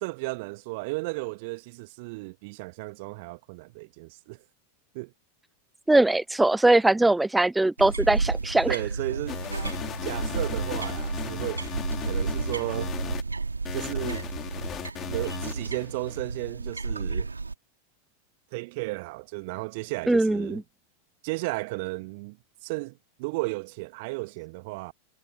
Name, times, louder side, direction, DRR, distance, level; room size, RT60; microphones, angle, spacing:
voice 1, 0.0-4.4 4.9-5.1 8.7-9.4 10.0-11.7 12.0-12.9 13.7-14.3 15.1-17.3 18.5-20.6 21.2-22.4 22.6-24.9, right 26 dB, 50° right, 1.7 m, -34 dB
voice 2, 5.9-8.8 20.1-20.6, right 2 dB, 5° right, 0.4 m, -21 dB
sound 1, 7.8-17.5, right 4 dB, 80° right, 2.8 m, -32 dB
sound 2, 9.3-13.2 13.6-16.2, left 10 dB, 25° left, 2.9 m, -37 dB
figure-of-eight pair, 90°, 0 cm